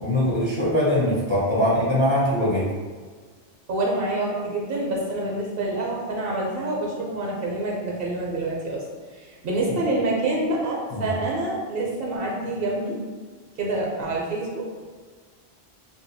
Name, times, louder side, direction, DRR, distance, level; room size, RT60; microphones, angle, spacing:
voice 1, 0.0-2.7 10.9-11.1, left 1 dB, 30° left, -9 dB, 0.6 m, -22 dB
voice 2, 3.7-8.8 9.2-13.0 13.6-14.6, right 2 dB, 65° right, -2 dB, 0.7 m, -27 dB
2.7 x 2.2 x 2.6 m, 1.5 s
omnidirectional pair, 1.1 m